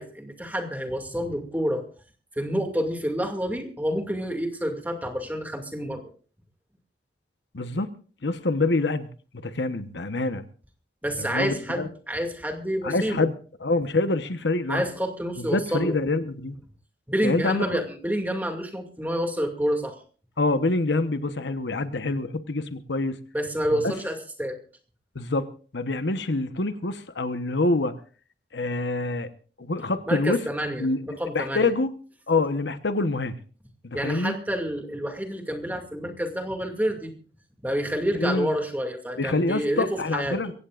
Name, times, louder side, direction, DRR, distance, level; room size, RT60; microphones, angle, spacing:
voice 1, 0.0-1.8 2.4-6.1 11.0-13.3 14.7-16.0 17.1-19.9 23.3-24.6 30.1-31.7 33.9-37.1 37.6-40.4, equal, 10° right, 4 dB, 2.3 m, -28 dB
voice 2, 7.5-7.9 8.2-9.1 9.4-10.4 11.2-11.9 12.8-13.3 13.6-14.8 15.4-16.6 17.2-17.8 20.4-23.2 23.7-23.9 25.1-25.5 25.7-27.9 28.5-29.3 29.6-30.4 30.8-31.9 32.3-33.3 33.8-34.3 38.1-38.5 39.2-40.5, left 2 dB, 75° left, 10 dB, 1.1 m, -26 dB
23.0 x 17.0 x 2.5 m, 0.40 s
head